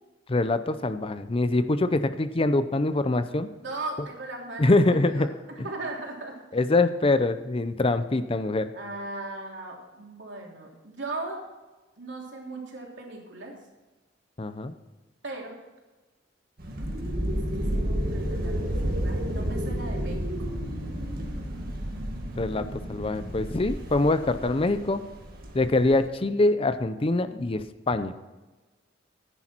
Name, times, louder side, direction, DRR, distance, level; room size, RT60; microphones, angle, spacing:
voice 1, 0.3-3.5 4.6-5.3 6.5-8.7 14.4-14.7 22.4-25.0 25.5-28.1, left 2 dB, 30° left, 11 dB, 0.6 m, -24 dB
voice 2, 3.6-5.3 5.6-6.4 8.7-11.4 12.0-13.5 15.2-15.6 17.3-20.3, right 2 dB, 70° right, -1 dB, 3.2 m, -38 dB
sound 1, 16.6-26.0, equal, 55° right, 2.0 m, -31 dB
14.0 x 10.0 x 4.5 m, 1.2 s
head